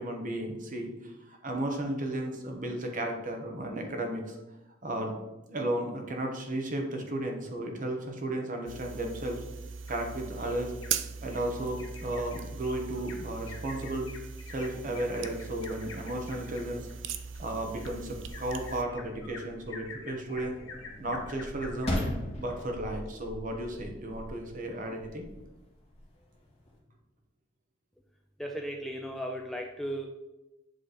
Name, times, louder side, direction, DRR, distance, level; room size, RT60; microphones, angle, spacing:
voice 1, 0.0-4.4 4.8-5.1 5.5-9.4 9.9-10.7 11.2-14.1 14.5-16.9 17.4-20.6 21.0-21.9 22.4-25.3, right 1 dB, 40° right, 3 dB, 1.0 m, -34 dB
sound 1, 8.7-18.8, right 6 dB, 65° right, 0.4 m, -40 dB
Bird vocalization bird call bird song, 9.9-11.0 11.3-11.5 11.8-22.1 22.6-22.7 23.1-23.2, left 4 dB, 90° left, 1.5 m, -48 dB
sound 2, 15.9-26.8, left 1 dB, 35° left, 1.9 m, -41 dB
voice 2, 28.4-30.1, equal, ahead, 1 dB, 0.4 m, -36 dB
7.7 x 3.2 x 4.1 m, 0.99 s
head